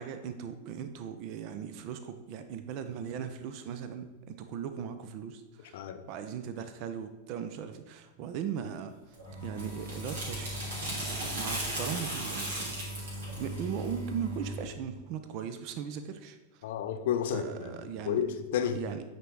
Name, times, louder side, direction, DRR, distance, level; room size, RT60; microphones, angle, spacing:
voice 1, 0.0-8.9 9.4-16.4 17.3-18.2 18.7-19.0, right 8 dB, 45° right, 9 dB, 0.6 m, -38 dB
sound 1, 9.1-14.6, right 1 dB, 65° right, 2.9 m, -36 dB
voice 2, 16.6-17.8 18.1-18.8, left 8 dB, 55° left, 9 dB, 0.7 m, -31 dB
9.3 x 4.5 x 4.7 m, 1.2 s
figure-of-eight pair, 90°, 0 cm